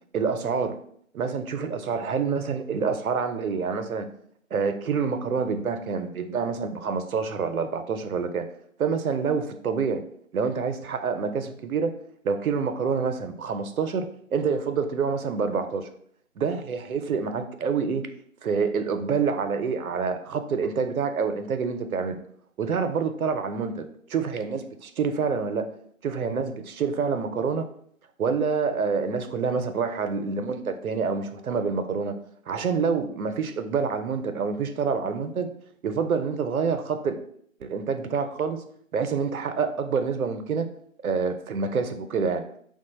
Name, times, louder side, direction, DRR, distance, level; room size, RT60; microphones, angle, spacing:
voice 1, 0.1-0.8 1.1-4.1 4.5-8.5 8.8-10.0 10.3-11.9 12.2-15.9 16.4-18.1 18.4-22.2 22.6-25.7 26.0-27.7 28.2-32.2 32.5-35.5 35.8-37.2 37.6-38.6 38.9-40.7 41.0-42.5, right 5 dB, 80° right, 8 dB, 0.5 m, -27 dB
3.3 x 2.1 x 3.0 m, 0.65 s
figure-of-eight pair, 160°, 42 cm